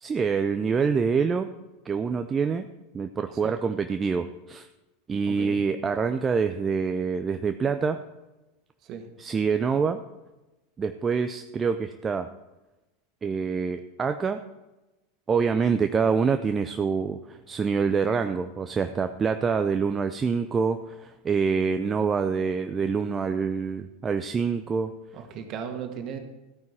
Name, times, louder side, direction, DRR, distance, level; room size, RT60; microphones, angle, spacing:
voice 1, 0.0-1.5 1.8-2.7 2.9-4.7 5.1-8.0 9.2-10.0 10.8-12.3 13.2-14.4 15.3-24.9, right 5 dB, 20° right, 8 dB, 0.6 m, -26 dB
voice 2, 3.3-3.6 5.3-5.6 8.8-9.1 25.1-26.2, right 7 dB, 40° right, 5 dB, 1.9 m, -37 dB
14.5 x 9.4 x 4.4 m, 1.0 s
figure-of-eight pair, 85°, 0 cm